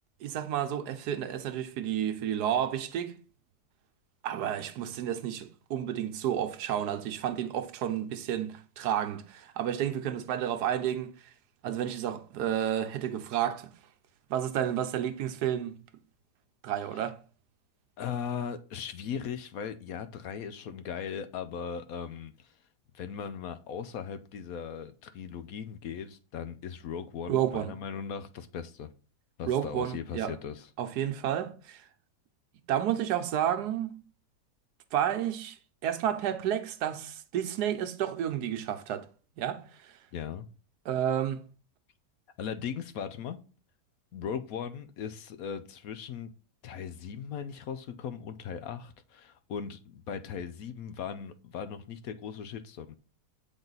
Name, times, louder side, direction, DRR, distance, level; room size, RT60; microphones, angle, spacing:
voice 1, 0.2-3.2 4.2-11.1 11.6-13.7 14.3-15.8 16.6-17.2 27.3-27.7 29.5-30.4 30.8-31.9 32.7-34.0 34.9-35.6 35.8-39.1 39.4-40.0 40.8-41.4, right 10 dB, 75° right, 1.3 m, -31 dB
voice 2, 18.0-22.6 22.9-28.9 29.4-30.7 40.1-40.5 42.4-43.4 44.1-46.3 46.6-53.0, left 7 dB, 65° left, 1.0 m, -38 dB
8.8 x 3.8 x 4.0 m
omnidirectional pair, 1.8 m